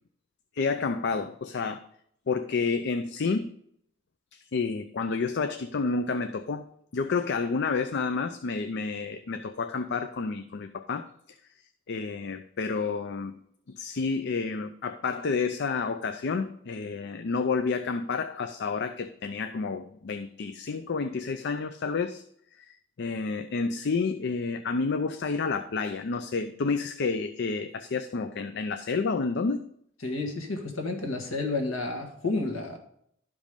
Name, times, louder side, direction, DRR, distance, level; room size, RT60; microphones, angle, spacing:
voice 1, 0.5-1.8 2.3-3.5 4.3-6.6 6.9-11.1 11.9-13.4 13.7-22.2 22.5-22.7 23.0-29.7, left 4 dB, 55° left, 9 dB, 0.5 m, -30 dB
voice 2, 30.0-32.8, left 3 dB, 80° left, 3 dB, 1.8 m, -31 dB
12.0 x 5.2 x 5.2 m, 0.68 s
head